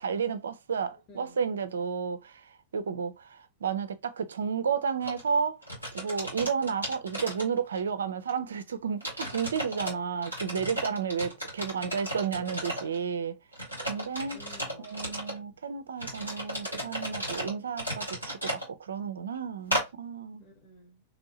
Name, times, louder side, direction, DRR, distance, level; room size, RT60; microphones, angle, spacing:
voice 1, 0.0-2.4 2.7-5.6 5.9-13.4 13.9-14.4 14.8-20.4, right 6 dB, 70° right, 0.4 m, -32 dB
voice 2, 0.9-1.5 14.3-15.5 20.4-21.0, left 1 dB, 40° left, 1.3 m, -54 dB
sound 1, 5.0-5.2 5.6-7.9 8.3-8.4 9.0-9.9 10.2-13.0 13.5-15.4 16.0-18.7 19.7-19.9, equal, 90° left, 1.7 m, -35 dB
3.0 x 2.6 x 2.9 m
figure-of-eight pair, 90°, 0 cm